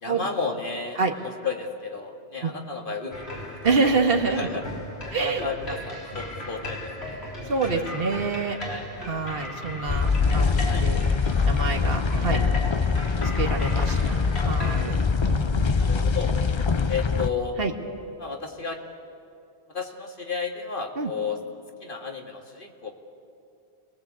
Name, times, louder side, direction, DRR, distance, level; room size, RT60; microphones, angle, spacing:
voice 1, 0.0-3.4 3.8-3.9 4.4-4.6 5.2-7.2 7.7-7.9 8.7-8.8 10.7-10.8 15.8-16.3 16.9-17.6 18.2-18.8 19.7-21.4 21.8-22.9, left 5 dB, 55° left, 2 dB, 2.3 m, -32 dB
sound 1, 3.1-14.9, left 1 dB, 80° left, 3.9 m, -36 dB
voice 2, 3.6-4.5 5.1-5.5 7.1-8.6 9.0-11.0 11.5-12.4 13.3-15.7 17.6-17.7 21.0-21.1, right 4 dB, 65° right, 3 dB, 1.8 m, -27 dB
sound 2, 9.9-17.3, left 5 dB, 30° left, 0.6 m, -23 dB
28.0 x 19.5 x 8.2 m, 2.5 s
omnidirectional pair, 1.1 m